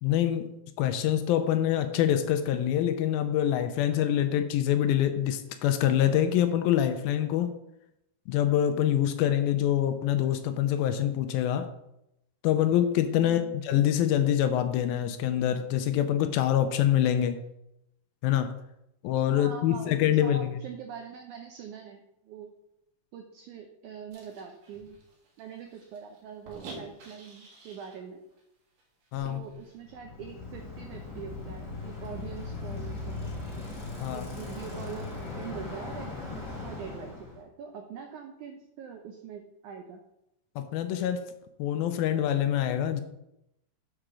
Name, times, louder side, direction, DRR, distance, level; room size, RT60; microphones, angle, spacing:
voice 1, 0.0-7.6 8.3-11.7 12.4-17.4 18.2-18.5 19.0-20.6 29.1-29.4 34.0-34.2 40.6-41.3 41.6-43.0, left 11 dB, 80° left, 9 dB, 2.3 m, -25 dB
voice 2, 13.2-13.6 19.4-22.5 23.1-25.0 25.4-28.2 29.2-33.3 34.1-40.0, right 7 dB, 85° right, 4 dB, 1.7 m, -43 dB
sound 1, 24.1-28.0 28.4-28.5 28.8-29.8, right 3 dB, 65° right, 3.0 m, -49 dB
Bicycle, 29.9-37.4, left 3 dB, 35° left, 2.1 m, -38 dB
6.6 x 4.9 x 6.1 m, 0.84 s
omnidirectional pair, 4.4 m